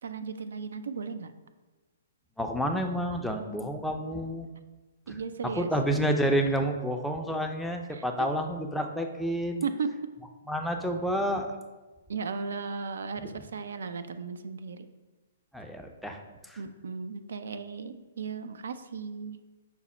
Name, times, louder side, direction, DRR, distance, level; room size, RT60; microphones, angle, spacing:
voice 1, 0.0-1.3 5.1-5.7 7.9-8.3 9.6-9.9 12.1-14.9 16.6-19.4, right 5 dB, 75° right, 10 dB, 0.3 m, -36 dB
voice 2, 2.4-4.5 5.1-9.6 10.5-11.5 13.2-13.3 15.5-16.2 16.5-16.6, equal, ahead, 2 dB, 0.4 m, -29 dB
5.8 x 2.0 x 4.2 m, 1.2 s
hypercardioid pair, 135°, 0 cm